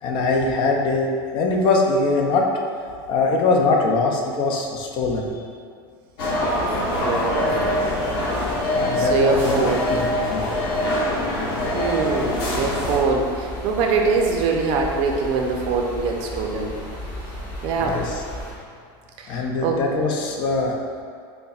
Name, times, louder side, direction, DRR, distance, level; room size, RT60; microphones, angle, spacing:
voice 1, 0.0-2.5 3.1-5.4 8.7-9.6 9.9-10.5 17.8-18.2 19.3-20.8, left 3 dB, 40° left, 1 dB, 0.4 m, -22 dB
sound 1, 6.2-13.0, left 1 dB, 80° left, 1.0 m, -24 dB
voice 2, 6.9-8.0 9.0-9.8 11.7-16.7 17.6-18.0 19.2-19.8, right 4 dB, 50° right, 1 dB, 0.5 m, -23 dB
sound 2, 12.3-18.5, left 1 dB, 15° left, 1.0 m, -35 dB
5.2 x 2.1 x 2.4 m, 2.2 s
supercardioid pair, 140°, 12 cm